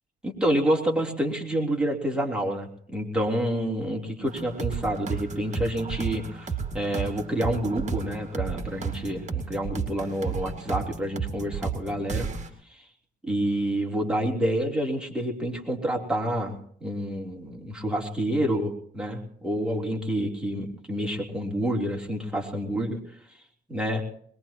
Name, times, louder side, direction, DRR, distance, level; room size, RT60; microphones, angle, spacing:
voice 1, 0.2-6.5 6.7-12.3 12.7-12.9 13.2-23.0 23.3-23.4 23.7-24.0, right 1 dB, 5° right, -1 dB, 3.3 m, -28 dB
sound 1, 4.3-12.5, right 5 dB, 35° right, 2.2 m, -33 dB
22.0 x 20.5 x 3.0 m, 0.64 s
cardioid pair, 90°, 20 cm